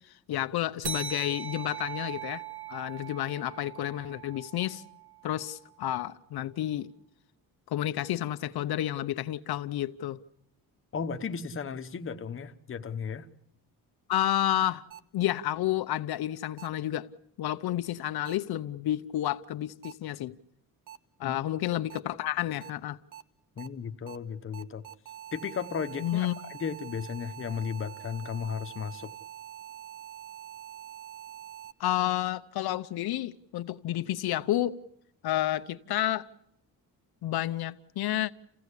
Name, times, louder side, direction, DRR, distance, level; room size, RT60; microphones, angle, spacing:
voice 1, 0.3-2.4 2.7-4.8 5.2-6.9 7.7-10.2 14.1-14.8 15.1-17.1 17.4-20.3 21.2-23.0 26.0-26.4 31.8-34.8 35.2-36.3 37.2-38.3, left 13 dB, 80° left, 0.8 m, -30 dB
sound 1, 0.8-5.8, right 7 dB, 90° right, 1.5 m, -40 dB
voice 2, 10.9-13.3 21.2-21.4 23.6-24.8 25.3-29.1, left 6 dB, 35° left, 1.1 m, -35 dB
sound 2, 14.9-15.0 16.6-16.7 18.3-18.4 19.8-19.9 20.9-21.0 21.9-22.0 22.6-22.7 23.1-23.2 23.6-23.7 24.1-24.2 24.5-31.7, right 10 dB, 55° right, 1.3 m, -45 dB
29.0 x 16.0 x 8.3 m
wide cardioid pair, 165°, 37 cm